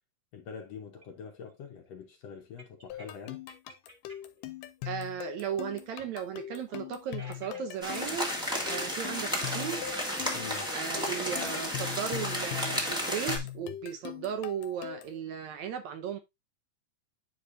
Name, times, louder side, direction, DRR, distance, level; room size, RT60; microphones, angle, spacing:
voice 1, 0.3-3.4 10.3-10.7, left 6 dB, 65° left, 1.9 m, -44 dB
sound 1, 1.0-4.4 4.8-11.5, right 2 dB, 20° right, 1.5 m, -48 dB
sound 2, 2.9-15.2, left 13 dB, 85° left, 2.3 m, -41 dB
voice 2, 4.9-8.3 8.6-9.8 10.7-16.2, right 8 dB, 70° right, 1.9 m, -36 dB
sound 3, 7.8-13.4, equal, 5° right, 0.9 m, -33 dB
9.6 x 4.8 x 2.6 m
omnidirectional pair, 3.7 m